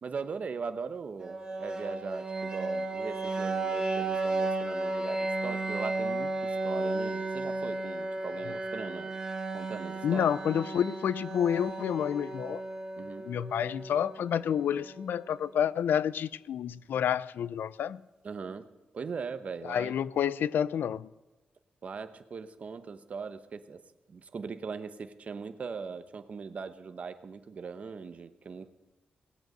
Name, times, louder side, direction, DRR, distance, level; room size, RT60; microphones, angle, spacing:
voice 1, 0.0-9.1 9.5-10.3 13.0-13.3 18.2-19.9 21.8-23.8 24.1-28.7, right 5 dB, 45° right, 11 dB, 0.9 m, -40 dB
sound 1, 1.2-15.1, right 2 dB, 20° right, 2.0 m, -34 dB
voice 2, 10.0-12.6 13.2-18.0 19.7-21.1, left 9 dB, 90° left, 19 dB, 0.4 m, -29 dB
18.5 x 7.8 x 7.8 m, 1.1 s
wide cardioid pair, 160°, 3 cm